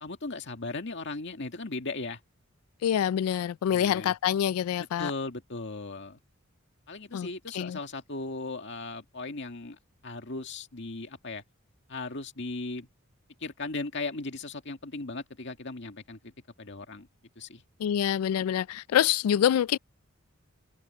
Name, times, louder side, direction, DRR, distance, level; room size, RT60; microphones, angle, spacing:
voice 1, 0.0-2.2 3.7-4.1 5.0-6.2 6.9-11.4 11.9-12.9 13.4-16.3 16.6-17.1 17.4-17.6, left 3 dB, 55° left, 2.1 m, -37 dB
voice 2, 2.8-5.1 7.1-7.3 7.5-7.8 17.8-19.8, left 10 dB, 90° left, 0.3 m, -26 dB
head